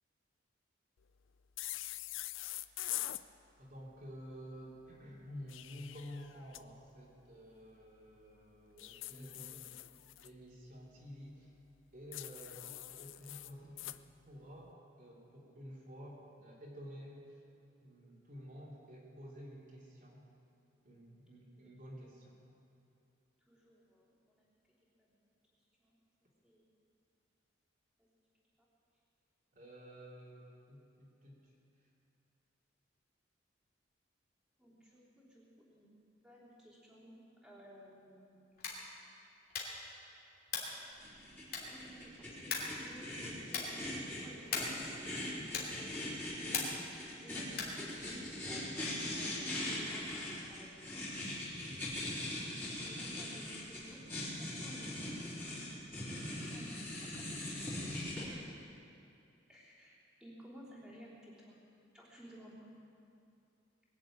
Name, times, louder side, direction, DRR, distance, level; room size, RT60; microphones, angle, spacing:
sound 1, 1.6-3.2 5.3-6.6 8.8-10.3 12.1-14.0, left 16 dB, 85° left, 0.5 m, -44 dB
voice 1, 3.6-9.6 10.2-11.5 11.9-17.4 17.8-20.2 20.8-22.4 29.5-31.5 57.9-58.0, equal, 45° right, -5 dB, 2.8 m, -51 dB
voice 2, 9.1-9.6 21.6-21.7 23.5-24.4 25.0-25.3 25.8-26.0 26.4-26.7 28.0-28.1 34.6-38.7 41.6-46.0 47.2-51.0 52.5-54.0 54.4-55.2 55.5-55.6 55.9-57.7 58.2-58.5 59.5-61.6 61.9-62.6, equal, 5° right, -7 dB, 3.3 m, -56 dB
sound 2, 38.5-38.9 39.5-39.9 40.5-40.8 41.5-41.9 42.5-42.8 43.5-43.8 44.5-44.9 45.5-45.8 46.5-46.9 47.5-47.8, left 5 dB, 50° left, 2.9 m, -39 dB
sound 3, 41.0-58.3, left 1 dB, 10° left, 3.9 m, -41 dB
22.0 x 7.5 x 8.7 m, 2.6 s
head